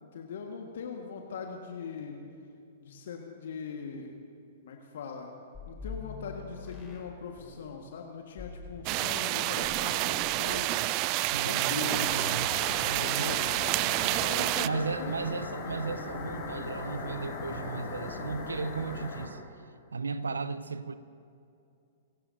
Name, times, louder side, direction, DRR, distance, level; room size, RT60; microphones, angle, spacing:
voice 1, 0.0-2.2 2.8-4.2 4.6-5.3 5.7-10.7 11.4-12.1 12.8-13.4 14.1-15.3, left 5 dB, 65° left, 1.6 m, -40 dB
sound 1, 5.5-7.7 8.4-9.9 10.2-10.5, left 4 dB, 10° left, 3.7 m, -45 dB
sound 2, 8.9-14.7, right 18 dB, 40° right, 0.4 m, -29 dB
voice 2, 11.3-13.3 14.6-19.4 19.9-21.0, right 4 dB, 80° right, 0.7 m, -35 dB
sound 3, 11.8-19.3, left 3 dB, 40° left, 4.2 m, -39 dB
25.5 x 16.5 x 2.8 m
figure-of-eight pair, 110°, 0 cm